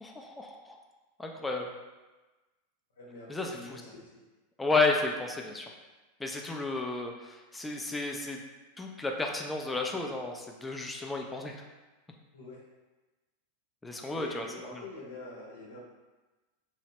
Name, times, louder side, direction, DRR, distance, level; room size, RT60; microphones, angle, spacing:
voice 1, 0.0-0.8 1.2-1.7 3.3-3.8 4.6-5.7 6.2-8.4 8.8-11.5 13.8-14.5, left 3 dB, 10° left, 2 dB, 0.3 m, -32 dB
voice 2, 3.0-4.1 12.3-12.6 14.1-15.8, left 3 dB, 90° left, -4 dB, 0.8 m, -45 dB
3.0 x 2.0 x 2.8 m, 1.2 s
hypercardioid pair, 105°, 0 cm